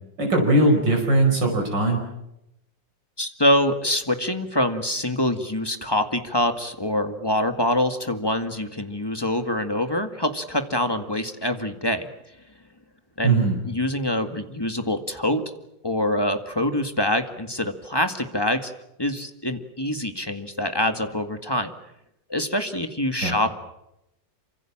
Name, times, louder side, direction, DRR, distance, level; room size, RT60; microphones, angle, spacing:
voice 1, 0.2-2.0 13.2-13.6 23.2-23.4, right 2 dB, 75° right, 2 dB, 5.9 m, -20 dB
voice 2, 3.2-12.1 13.2-15.4 15.8-18.7 19.0-21.7 22.3-23.6, left 1 dB, 15° left, 7 dB, 1.9 m, -25 dB
27.5 x 25.5 x 7.4 m, 0.84 s
omnidirectional pair, 2.0 m